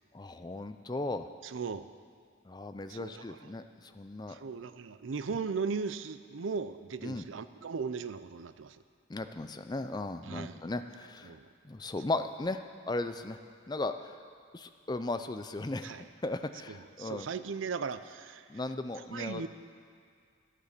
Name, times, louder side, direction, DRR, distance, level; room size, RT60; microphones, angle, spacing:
voice 1, 0.1-1.3 2.5-4.4 7.0-7.2 9.1-11.4 11.6-13.4 13.7-14.2 14.5-15.9 16.2-17.3 18.5-19.4, left 2 dB, 20° left, 9 dB, 0.5 m, -36 dB
voice 2, 1.4-1.9 2.9-3.5 4.3-8.8 10.2-10.7 11.2-11.5 15.8-16.0 16.7-18.5 19.1-19.5, right 5 dB, 85° right, 13 dB, 0.5 m, -37 dB
13.0 x 9.9 x 6.7 m, 2.2 s
head